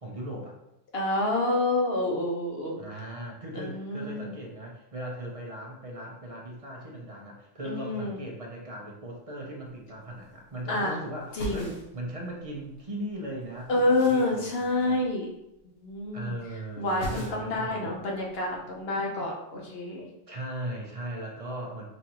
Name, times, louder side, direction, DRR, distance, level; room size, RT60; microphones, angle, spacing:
voice 1, 0.0-0.6 2.8-15.0 16.1-17.9 20.3-21.9, right 1 dB, 35° right, -1 dB, 0.7 m, -38 dB
voice 2, 0.9-2.8 3.6-4.4 7.6-8.2 10.7-11.0 11.3-11.7 13.7-15.3 15.6-16.3 16.8-20.1, left 2 dB, 55° left, -1 dB, 1.1 m, -28 dB
sound 1, 9.7-9.8 10.0-10.8 11.2-12.8 13.1-15.6 15.9-16.4 16.6-17.7 18.0-18.8, equal, 80° left, 1.5 m, -42 dB
5.3 x 2.6 x 2.9 m, 0.84 s
omnidirectional pair, 1.3 m